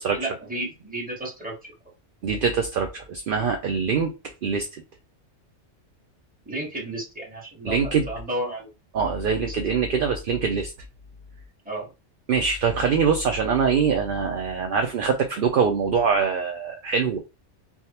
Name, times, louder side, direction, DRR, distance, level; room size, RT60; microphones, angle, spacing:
voice 1, 0.1-1.7 6.4-7.8 8.1-8.7 9.4-9.6 11.6-11.9, right 1 dB, 5° right, 1.2 m, -32 dB
voice 2, 2.2-4.8 7.6-8.1 8.9-10.7 12.3-17.2, right 6 dB, 60° right, 0.6 m, -23 dB
3.4 x 2.3 x 2.8 m
omnidirectional pair, 1.3 m